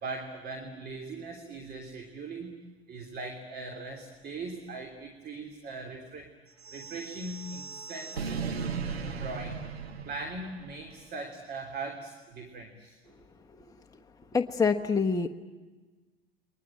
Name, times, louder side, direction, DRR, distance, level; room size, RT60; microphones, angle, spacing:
voice 1, 0.0-2.6 2.9-6.3 6.7-8.5 9.2-9.6 10.0-13.0, right 3 dB, 30° right, 5 dB, 3.2 m, -40 dB
sound 1, 6.6-10.9, right 5 dB, 85° right, 1.9 m, -37 dB
voice 2, 14.3-15.3, left 5 dB, 10° left, 3 dB, 1.2 m, -25 dB
29.5 x 22.5 x 8.8 m, 1.3 s
figure-of-eight pair, 80°, 31 cm